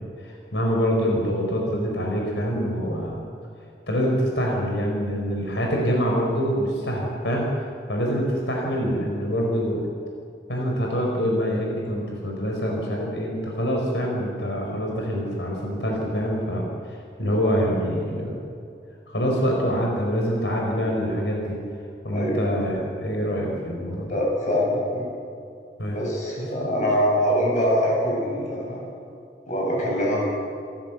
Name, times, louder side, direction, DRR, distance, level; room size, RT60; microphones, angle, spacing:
voice 1, 0.0-3.2 3.9-9.9 10.5-18.4 19.1-21.6 22.0-24.1 25.8-26.0, equal, 85° left, -1 dB, 4.6 m, -25 dB
voice 2, 22.1-22.4 24.1-25.1 25.9-28.9 29.5-30.3, equal, 45° left, -2 dB, 7.6 m, -23 dB
27.5 x 15.0 x 7.2 m, 2.5 s
head